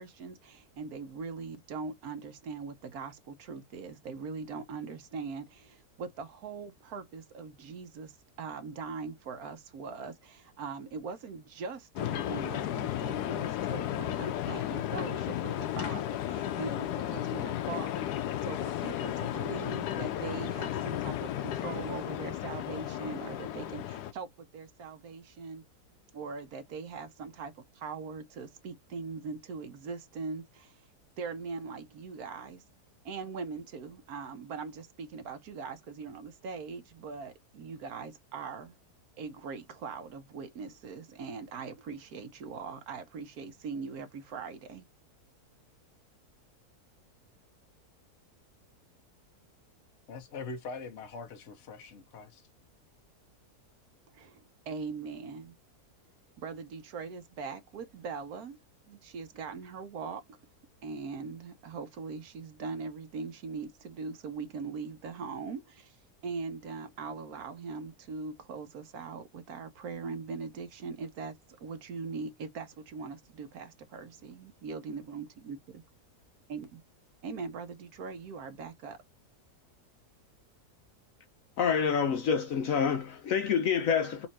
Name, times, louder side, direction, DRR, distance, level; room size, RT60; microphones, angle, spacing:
voice 1, 0.0-18.1 18.4-25.6 26.1-30.8 31.2-32.6 33.0-38.7 39.2-44.8 54.1-55.5 56.4-58.6 58.9-60.2 60.8-66.0 66.2-75.8 76.5-76.8 77.2-79.0, right 5 dB, 70° right, 1.3 m, -41 dB
sound 1, 12.0-24.1, left 12 dB, 85° left, 1.2 m, -34 dB
voice 2, 50.1-52.4, left 4 dB, 50° left, 1.3 m, -42 dB
voice 3, 81.6-84.3, left 6 dB, 65° left, 1.0 m, -27 dB
4.2 x 2.7 x 4.1 m
omnidirectional pair, 1.7 m